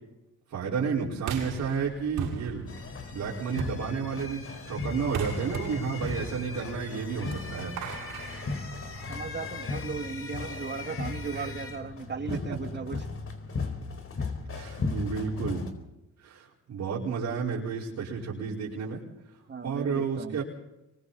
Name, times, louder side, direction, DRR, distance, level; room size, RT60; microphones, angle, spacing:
voice 1, 0.5-2.7 3.1-7.8 11.3-11.5 12.3-12.6 14.5-15.7 16.2-19.0 19.3-20.4, right 6 dB, 70° right, -6 dB, 5.1 m, -32 dB
sound 1, 1.2-9.3, right 7 dB, 85° right, 6.2 m, -39 dB
sound 2, 2.7-15.7, left 4 dB, 45° left, 4.3 m, -36 dB
voice 2, 9.1-13.1 19.5-20.4, right 5 dB, 35° right, 5 dB, 2.6 m, -37 dB
26.5 x 23.0 x 4.3 m, 0.95 s
cardioid pair, 90°, 30 cm